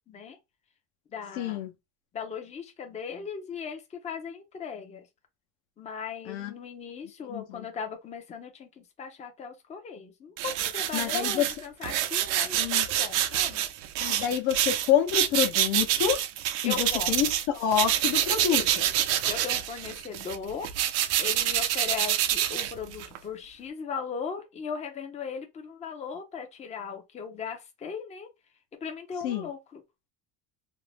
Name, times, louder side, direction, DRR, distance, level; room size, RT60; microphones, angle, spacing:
voice 1, 0.1-0.4 1.1-1.6 2.1-5.1 5.8-13.6 16.6-17.2 18.5-18.7 19.1-20.7 21.2-28.3 28.8-29.8, left 6 dB, 15° left, 0.4 m, -38 dB
voice 2, 1.4-1.7 6.3-6.5 7.2-7.6 10.9-11.5 12.5-12.9 14.0-16.2 16.6-17.3 17.5-18.9 29.2-29.5, left 10 dB, 70° left, 0.8 m, -27 dB
sound 1, 10.4-17.5 17.7-23.2, right 12 dB, 85° right, 0.6 m, -27 dB
2.6 x 2.0 x 3.2 m
cardioid pair, 130°, 48 cm